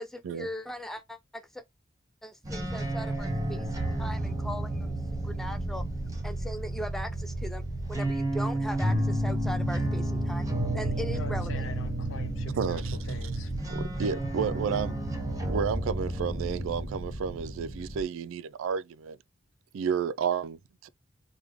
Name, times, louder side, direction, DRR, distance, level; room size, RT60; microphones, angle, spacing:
voice 1, 0.0-1.6 2.2-4.9 5.2-5.8 6.2-7.6 7.9-10.5 10.7-11.6, equal, ahead, 0.5 m, -39 dB
sound 1, 2.4-18.0, right 1 dB, 20° right, 0.8 m, -31 dB
voice 2, 11.1-13.5, left 4 dB, 70° left, 0.6 m, -44 dB
voice 3, 12.6-13.0 13.7-15.0 15.5-19.2 19.7-20.6, right 7 dB, 90° right, 0.3 m, -31 dB
3.4 x 2.2 x 3.3 m
head